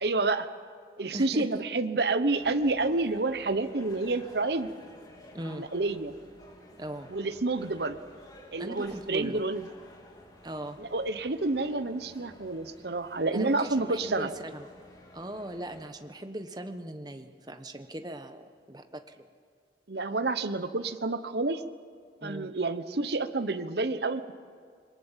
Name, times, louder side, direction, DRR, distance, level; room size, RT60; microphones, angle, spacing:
voice 1, 0.0-0.5 1.0-4.7 5.5-6.1 7.1-8.0 8.5-9.7 10.8-14.3 19.9-21.6 22.2-24.3, right 3 dB, 65° right, 10 dB, 1.0 m, -29 dB
voice 2, 1.1-1.6 5.3-5.7 6.8-7.1 8.6-9.4 10.4-10.8 13.3-14.6 15.1-19.2 22.2-22.5, right 1 dB, 20° right, 7 dB, 1.1 m, -39 dB
sound 1, 2.4-15.9, left 1 dB, 20° left, 2.7 m, -52 dB
26.5 x 21.5 x 7.5 m, 2.1 s
head